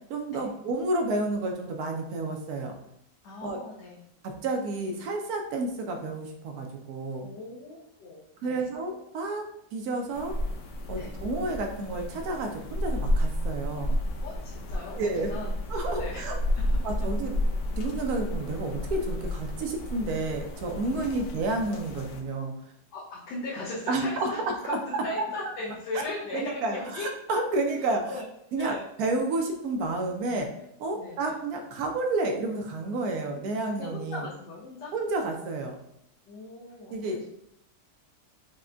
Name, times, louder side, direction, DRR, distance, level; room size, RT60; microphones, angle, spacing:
voice 1, 0.1-2.7 3.4-3.6 4.2-7.3 8.4-9.5 9.7-10.4 10.9-14.0 15.0-15.4 15.7-16.4 16.8-17.3 17.8-22.5 23.9-25.2 26.3-28.0 28.5-30.5 30.8-34.2 34.9-35.8 36.9-37.2, right 2 dB, 70° right, 3 dB, 0.9 m, -30 dB
voice 2, 3.2-4.0 7.2-8.6 11.0-11.1 14.2-16.3 16.5-16.7 20.9-21.1 22.9-24.4 24.6-27.1 28.1-28.3 28.6-28.8 30.9-31.3 33.3-33.4 33.8-34.9 36.3-37.2, left 2 dB, 85° left, -7 dB, 1.4 m, -38 dB
sound 1, 10.1-22.2, equal, 70° left, 0.7 m, -31 dB
5.8 x 2.1 x 2.5 m, 0.75 s
omnidirectional pair, 1.9 m